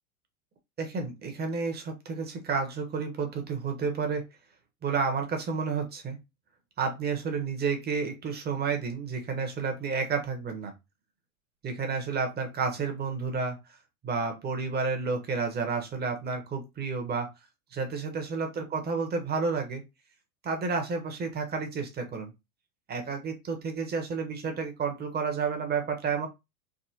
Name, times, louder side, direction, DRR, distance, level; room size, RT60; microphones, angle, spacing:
voice 1, 0.8-4.2 4.8-6.2 6.8-10.7 11.6-13.6 14.0-17.3 17.7-19.8 20.4-22.3 22.9-26.3, right 5 dB, 20° right, 5 dB, 0.9 m, -31 dB
3.6 x 2.1 x 2.7 m, 0.23 s
hypercardioid pair, 100°, 45 cm